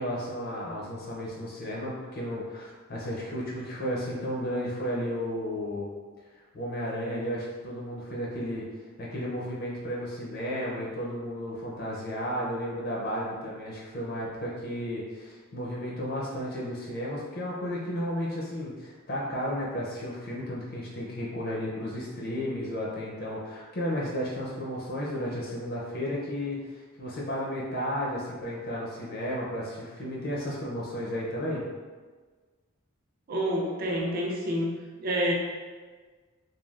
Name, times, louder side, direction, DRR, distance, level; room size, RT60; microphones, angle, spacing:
voice 1, 0.0-5.9 6.5-8.7 9.0-31.6, equal, 45° left, -4 dB, 0.5 m, -33 dB
voice 2, 33.3-34.7 35.0-35.3, equal, 40° right, -1 dB, 0.4 m, -28 dB
3.2 x 2.3 x 2.3 m, 1.4 s
head